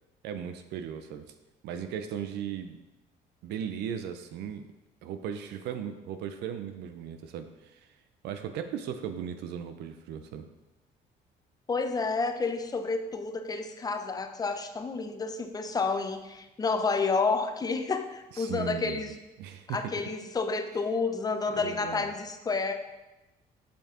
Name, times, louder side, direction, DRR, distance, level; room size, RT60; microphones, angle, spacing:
voice 1, 0.2-1.3 1.6-2.8 3.4-4.7 5.0-7.9 8.2-10.5 18.3-19.0 19.4-19.9 21.5-22.1, right 8 dB, 80° right, 8 dB, 0.6 m, -37 dB
voice 2, 11.7-19.1 19.7-22.7, left 4 dB, 20° left, 7 dB, 0.6 m, -30 dB
6.8 x 5.3 x 3.7 m, 1.0 s
cardioid pair, 110°, 17 cm